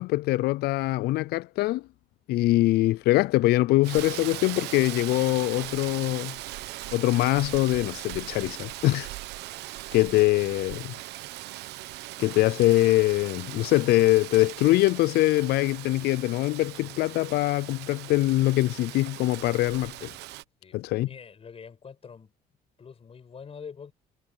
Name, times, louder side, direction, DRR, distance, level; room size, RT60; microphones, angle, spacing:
voice 1, 0.0-1.8 2.3-6.4 6.9-9.1 9.9-10.9 12.2-20.1 20.7-21.1, left 18 dB, 70° left, 0.4 m, -23 dB
Rain, 3.8-20.4, right 17 dB, 85° right, 1.1 m, -39 dB
voice 2, 21.0-22.3 22.8-23.9, left 6 dB, 35° left, 5.4 m, -44 dB
cardioid pair, 110°, 17 cm